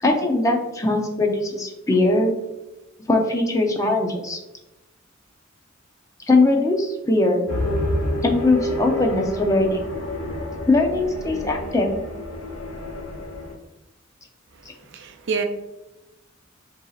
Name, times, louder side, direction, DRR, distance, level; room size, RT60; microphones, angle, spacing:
voice 1, 0.0-2.3 3.1-4.4 6.3-7.4 8.2-9.8 10.6-12.0 14.7-14.8, left 2 dB, 15° left, 1 dB, 0.6 m, -20 dB
sound 1, 7.5-13.5, left 1 dB, 80° left, 1.0 m, -29 dB
voice 2, 14.5-15.4, right 5 dB, 60° right, 6 dB, 0.5 m, -29 dB
7.8 x 2.7 x 2.4 m, 0.98 s
head